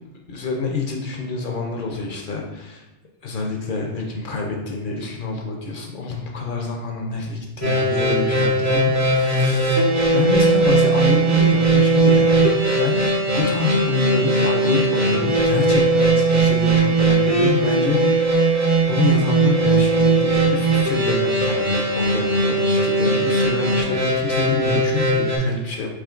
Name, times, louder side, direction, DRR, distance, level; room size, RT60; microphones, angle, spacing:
voice 1, 0.3-2.8 3.2-9.9 10.1-12.4 12.8-25.9, left 4 dB, 55° left, 0 dB, 0.6 m, -27 dB
sound 1, 7.6-25.4, right 2 dB, 30° right, 0.3 m, -19 dB
4.9 x 2.9 x 2.4 m, 1.0 s
omnidirectional pair, 1.3 m